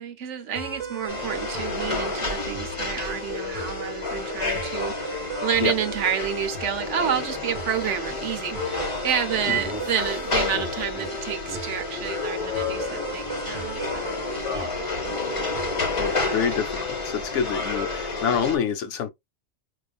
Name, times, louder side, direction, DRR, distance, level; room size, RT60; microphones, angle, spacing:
voice 1, 0.0-14.2 14.5-14.7, right 8 dB, 70° right, 1.0 m, -29 dB
sound 1, 0.6-16.6, right 3 dB, 35° right, 0.9 m, -36 dB
sound 2, 1.1-18.6, left 4 dB, 30° left, 0.9 m, -30 dB
Laughter, 9.4-11.1 11.4-11.6 11.9-12.1 12.4-13.9, right 1 dB, ahead, 0.9 m, -40 dB
voice 2, 16.0-19.1, left 7 dB, 75° left, 1.0 m, -27 dB
4.8 x 2.4 x 2.3 m
omnidirectional pair, 1.3 m